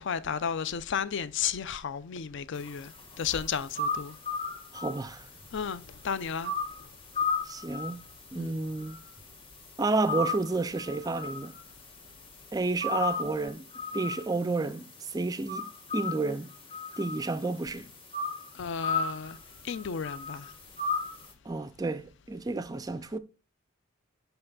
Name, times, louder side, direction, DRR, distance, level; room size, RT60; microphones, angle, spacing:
voice 1, 0.0-2.9 3.2-4.1 5.5-6.5 8.4-8.6 18.5-19.4 19.6-20.5, left 7 dB, 55° left, 0.5 m, -33 dB
sound 1, 2.6-21.3, left 3 dB, 25° left, 1.2 m, -37 dB
voice 2, 4.7-5.3 7.4-8.0 8.3-9.0 9.8-11.5 12.5-13.7 13.9-15.7 15.9-16.5 17.0-17.9 21.5-23.2, right 3 dB, 15° right, 0.3 m, -31 dB
5.7 x 5.6 x 3.9 m
head